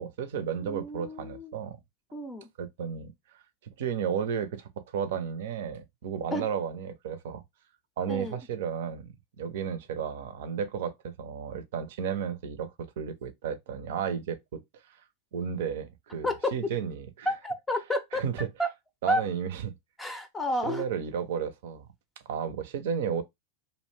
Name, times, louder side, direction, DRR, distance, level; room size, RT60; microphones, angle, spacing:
voice 1, 0.0-1.8 2.6-3.4 3.8-7.4 8.0-14.6 14.9-15.0 15.3-17.3 18.1-18.5 19.0-19.7 20.6-21.9 22.3-23.2, right 7 dB, 70° right, 0.5 m, -33 dB
voice 2, 0.6-1.5 2.1-2.5 6.3-6.5 8.1-8.4 16.2-16.5 17.3-18.2 18.6-18.7 19.1-19.2 20.0-20.8, equal, 10° left, 0.5 m, -30 dB
2.5 x 2.1 x 3.2 m
hypercardioid pair, 100°, 0 cm